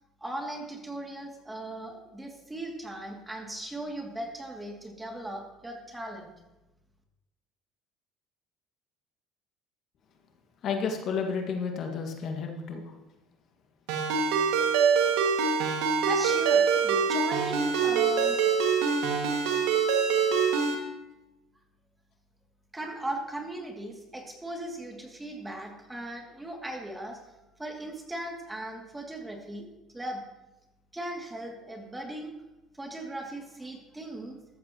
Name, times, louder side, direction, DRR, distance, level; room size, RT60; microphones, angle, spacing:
voice 1, 0.2-6.3 16.0-18.4 22.7-27.2 27.6-29.7 29.9-30.2 30.9-32.3 32.7-34.4, right 1 dB, 10° right, 1 dB, 2.5 m, -38 dB
voice 2, 10.6-12.8, left 5 dB, 55° left, 3 dB, 1.8 m, -31 dB
Ringtone, 13.9-20.8, right 6 dB, 85° right, 2.0 m, -24 dB
14.0 x 13.5 x 3.0 m, 1.0 s
supercardioid pair, 90°, 0 cm